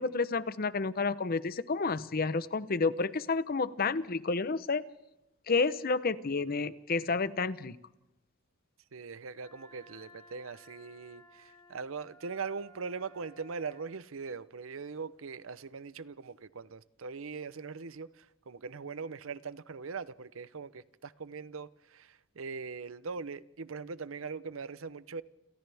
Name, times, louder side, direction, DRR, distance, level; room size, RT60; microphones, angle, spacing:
voice 1, 0.0-4.8 5.5-7.8, left 4 dB, 45° left, 0.8 m, -30 dB
voice 2, 8.9-25.2, right 5 dB, 80° right, 0.7 m, -41 dB
Wind instrument woodwind instrument, 9.4-13.9, left 1 dB, 25° left, 7.2 m, -57 dB
29.0 x 28.0 x 3.5 m
head